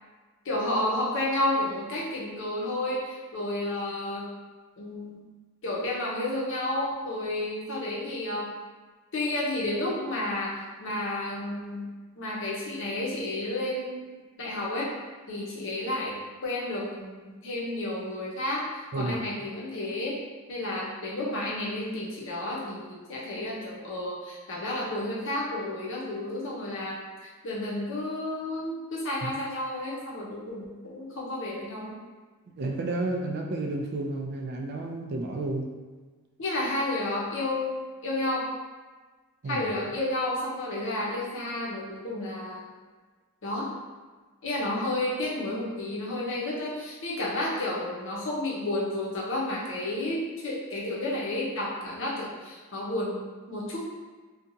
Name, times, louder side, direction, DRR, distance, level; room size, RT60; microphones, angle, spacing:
voice 1, 0.4-4.3 4.8-5.2 5.6-8.5 9.1-14.9 15.3-18.6 18.9-20.2 20.5-32.0 36.4-38.5 39.4-42.6 43.4-43.7 44.4-53.8, left 1 dB, 60° left, -5 dB, 0.7 m, -31 dB
voice 2, 32.5-35.7 39.4-39.7, right 2 dB, 45° right, 1 dB, 0.3 m, -31 dB
2.7 x 2.3 x 2.6 m, 1.3 s
head